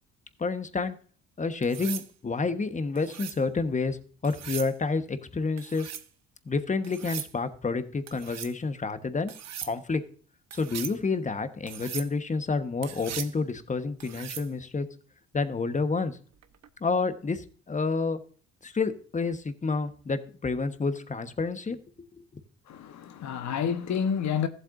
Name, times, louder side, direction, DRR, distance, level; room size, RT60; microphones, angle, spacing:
voice 1, 0.4-1.0 1.4-4.0 4.2-5.9 6.5-9.3 9.6-10.0 10.5-14.9 15.3-16.2 16.8-18.2 18.6-21.8 22.2-22.3, left 4 dB, 25° left, 1.1 m, -29 dB
sound 1, 1.6-2.1 3.0-3.4 4.2-4.7 5.6-6.1 6.8-7.3 8.1-8.5 9.3-9.7 10.5-11.0 11.7-12.1 12.8-13.4 14.0-14.5 16.4-16.7, right 10 dB, 60° right, 1.0 m, -39 dB
voice 2, 22.7-24.5, left 7 dB, 65° left, 1.1 m, -29 dB
14.5 x 7.9 x 2.5 m
cardioid pair, 90°, 30 cm